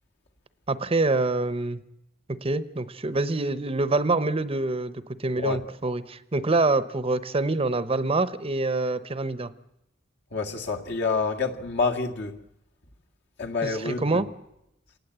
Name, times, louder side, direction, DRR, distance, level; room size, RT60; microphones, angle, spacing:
voice 1, 0.7-1.8 2.3-9.5 13.6-14.3, right 2 dB, 30° right, 0.8 m, -26 dB
voice 2, 10.3-12.4 13.4-14.2, left 4 dB, 60° left, 2.0 m, -28 dB
27.0 x 18.5 x 8.1 m
head